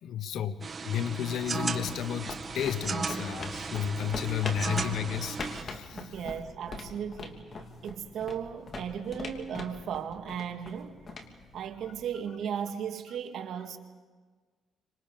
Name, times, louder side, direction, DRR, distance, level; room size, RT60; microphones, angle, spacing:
voice 1, 0.0-6.2 11.8-11.9, left 9 dB, 75° left, 1.0 m, -33 dB
sound 1, 0.6-5.6, right 4 dB, 40° right, 1.6 m, -35 dB
sound 2, 1.7-12.2, left 3 dB, 45° left, 2.9 m, -43 dB
voice 2, 5.9-7.4 7.8-11.0 11.5-13.8, right 8 dB, 70° right, 2.0 m, -36 dB
30.0 x 26.0 x 5.3 m
cardioid pair, 90°, 0 cm